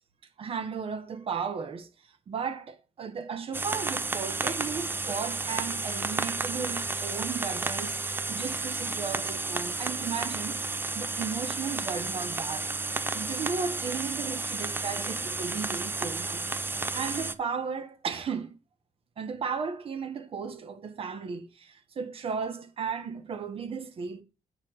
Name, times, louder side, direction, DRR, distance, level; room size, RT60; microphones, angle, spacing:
voice 1, 0.4-1.9 2.3-10.6 10.9-12.7 13.1-16.4 16.9-18.6 19.2-24.2, right 6 dB, 45° right, 1.3 m, -35 dB
sound 1, 3.5-17.3, right 3 dB, 15° right, 0.5 m, -32 dB
8.1 x 5.5 x 6.3 m
wide cardioid pair, 175°, 13 cm